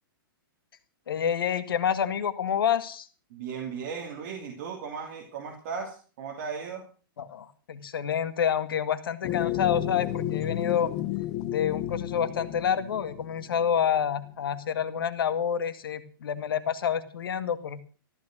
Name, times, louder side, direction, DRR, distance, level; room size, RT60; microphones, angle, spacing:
voice 1, 1.1-3.1 7.2-10.9 11.5-17.8, left 8 dB, 70° left, 10 dB, 2.0 m, -28 dB
voice 2, 3.3-6.9, right 6 dB, 40° right, 0 dB, 2.8 m, -36 dB
sound 1, 9.2-13.9, left 12 dB, 25° left, 0.9 m, -32 dB
14.5 x 12.0 x 6.1 m, 0.39 s
hypercardioid pair, 165°, 12 cm